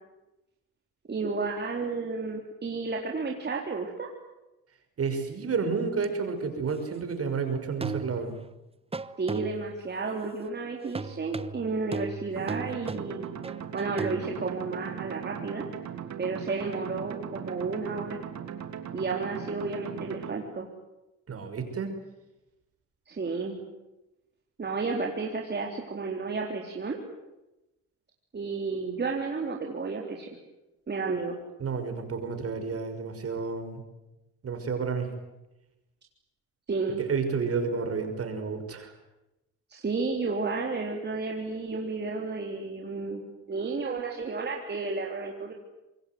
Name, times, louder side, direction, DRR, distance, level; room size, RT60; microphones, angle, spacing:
voice 1, 1.1-4.1 9.2-13.3 13.7-15.7 16.2-18.2 18.9-20.7 23.1-23.7 24.6-27.0 28.3-30.3 30.9-31.4 36.7-37.0 39.7-45.5, right 4 dB, 35° right, 0 dB, 3.8 m, -32 dB
voice 2, 5.0-8.3 21.3-21.9 31.6-33.8 34.4-35.1 37.0-38.9, right 5 dB, 50° right, 7 dB, 5.9 m, -30 dB
sound 1, 6.0-6.1 7.8-8.5 8.9-9.8 10.9-14.3, right 4 dB, 20° right, 1.0 m, -37 dB
sound 2, 12.4-20.4, right 8 dB, 70° right, 2.9 m, -39 dB
25.5 x 22.0 x 9.5 m, 0.97 s
cardioid pair, 90°, 30 cm